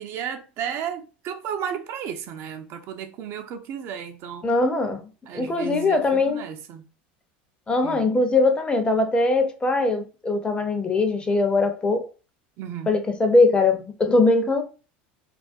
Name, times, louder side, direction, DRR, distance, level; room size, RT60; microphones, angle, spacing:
voice 1, 0.0-4.5 5.3-6.9 7.8-8.1 12.6-13.0, right 8 dB, 55° right, 0.4 m, -33 dB
voice 2, 4.4-5.0 5.3-6.4 7.7-12.0 12.9-14.6, left 3 dB, 20° left, 0.5 m, -21 dB
2.4 x 2.1 x 2.4 m
hypercardioid pair, 95°, 5 cm